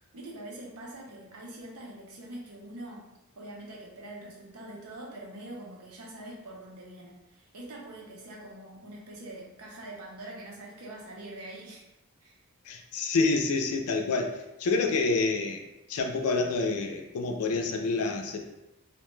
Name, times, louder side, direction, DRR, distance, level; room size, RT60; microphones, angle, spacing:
voice 1, 0.1-3.1 3.4-11.8 12.2-12.4, right 1 dB, 80° right, -2 dB, 0.7 m, -44 dB
voice 2, 12.7-15.6 15.9-18.4, left 3 dB, 75° left, 3 dB, 0.4 m, -28 dB
2.7 x 2.1 x 3.1 m, 0.93 s
head